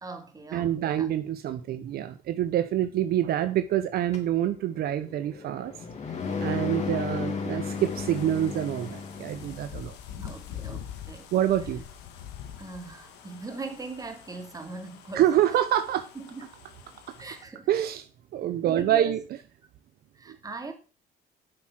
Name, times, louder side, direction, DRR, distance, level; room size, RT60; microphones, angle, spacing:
voice 1, 0.0-1.1 10.1-11.3 12.6-15.3 16.1-16.5 17.2-17.7 18.7-19.2 20.1-20.7, right 3 dB, 20° right, 6 dB, 2.7 m, -40 dB
voice 2, 0.5-5.7 6.4-10.0 11.3-11.8 15.1-16.1 17.7-18.1 18.3-19.4 20.3-20.4, right 11 dB, 65° right, 11 dB, 0.9 m, -26 dB
sound 1, 4.1-9.7, left 5 dB, 40° left, 3.0 m, -34 dB
sound 2, 7.7-17.4, left 9 dB, 90° left, 2.1 m, -45 dB
9.1 x 7.4 x 6.2 m, 0.34 s
cardioid pair, 110°, 17 cm